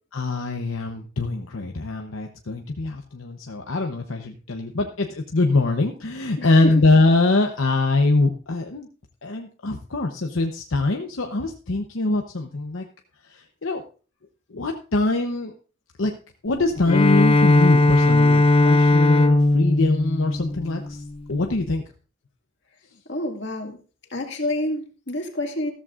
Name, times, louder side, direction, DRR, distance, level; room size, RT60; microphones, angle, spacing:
voice 1, 0.1-8.9 9.2-12.9 13.3-13.8 14.5-15.5 16.0-16.1 16.4-21.0 21.3-21.8, left 2 dB, 80° left, 3 dB, 0.9 m, -23 dB
voice 2, 6.4-6.7 23.1-23.8 24.1-25.7, left 1 dB, 60° left, 3 dB, 2.0 m, -28 dB
Bowed string instrument, 16.8-21.2, left 2 dB, 30° left, 0.6 m, -18 dB
14.0 x 13.5 x 2.5 m, 0.37 s
head